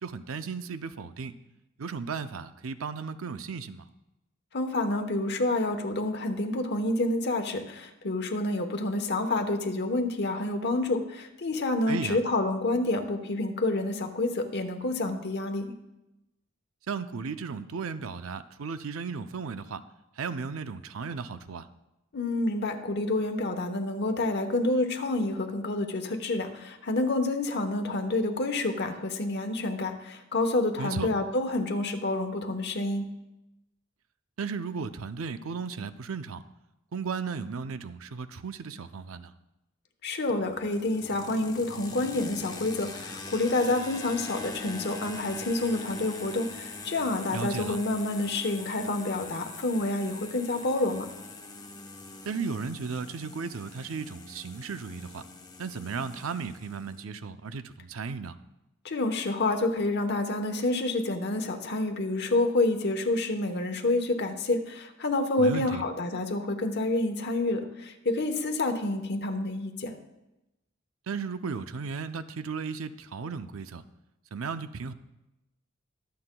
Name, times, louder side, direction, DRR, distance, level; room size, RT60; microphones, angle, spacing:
voice 1, 0.0-1.4 1.8-3.9 11.9-12.2 16.9-19.8 20.2-21.7 30.8-31.1 34.4-36.4 36.9-39.3 47.3-47.8 52.2-55.2 55.6-58.4 65.4-65.8 71.1-73.8 74.3-74.9, right 5 dB, 90° right, 11 dB, 0.5 m, -35 dB
voice 2, 4.5-15.7 22.1-33.1 40.0-51.1 58.8-69.9, left 2 dB, 55° left, 6 dB, 1.0 m, -28 dB
sound 1, 40.3-57.0, left 3 dB, 20° left, 0.8 m, -43 dB
22.5 x 7.7 x 2.3 m, 0.94 s
head